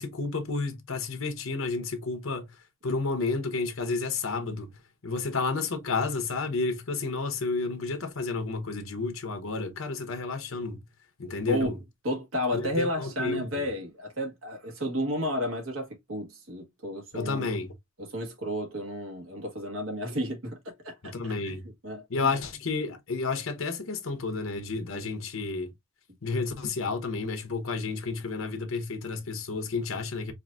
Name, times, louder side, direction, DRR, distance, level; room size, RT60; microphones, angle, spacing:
voice 1, 0.0-2.5 2.8-4.7 5.0-10.9 11.2-11.8 12.5-13.6 17.1-17.7 21.0-21.7 22.1-25.7 26.2-30.3, left 4 dB, 85° left, 0.9 m, -31 dB
voice 2, 11.5-17.5 18.0-21.6 21.8-22.3, equal, 85° right, 1.4 m, -32 dB
4.7 x 2.6 x 2.4 m
head